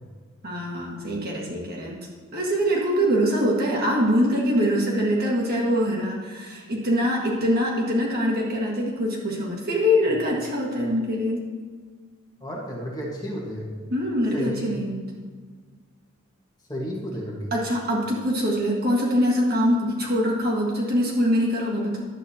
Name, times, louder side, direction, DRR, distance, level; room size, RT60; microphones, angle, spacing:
voice 1, 0.4-11.4 13.9-15.0 17.5-22.1, equal, 45° right, -3 dB, 1.6 m, -24 dB
voice 2, 12.4-13.7 14.3-14.7 16.7-17.5, equal, 20° left, -3 dB, 1.4 m, -32 dB
11.0 x 8.1 x 2.8 m, 1.5 s
head